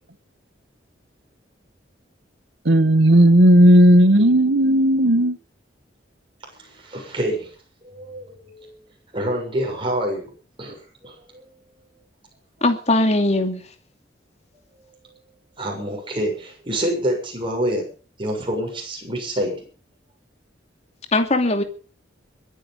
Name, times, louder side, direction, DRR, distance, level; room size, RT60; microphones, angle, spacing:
voice 1, 2.6-5.4, right 1 dB, 80° right, 1.4 m, -14 dB
voice 2, 6.5-7.5 7.8-8.7 9.1-10.3 10.6-10.8 11.0-11.4 15.6-17.9 18.2-19.6, right 1 dB, 30° right, 6.9 m, -27 dB
voice 3, 12.6-13.6 21.1-21.6, left 2 dB, 40° left, 2.6 m, -19 dB
22.0 x 10.0 x 5.5 m
head